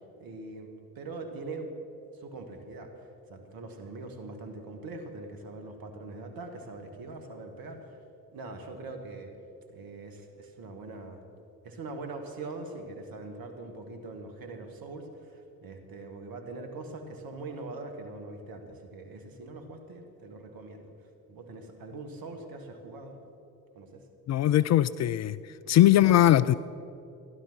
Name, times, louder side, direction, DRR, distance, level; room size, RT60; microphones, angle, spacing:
voice 1, 0.2-0.7 0.9-1.7 2.1-8.0 8.3-9.3 9.7-11.2 11.6-20.9 21.3-23.2 23.7-24.0 25.6-25.8, right 3 dB, 55° right, 6 dB, 2.4 m, -42 dB
voice 2, 24.3-25.4 25.7-26.5, left 13 dB, 40° left, 16 dB, 0.5 m, -20 dB
15.5 x 11.5 x 6.3 m, 2.7 s
hypercardioid pair, 55°, 42 cm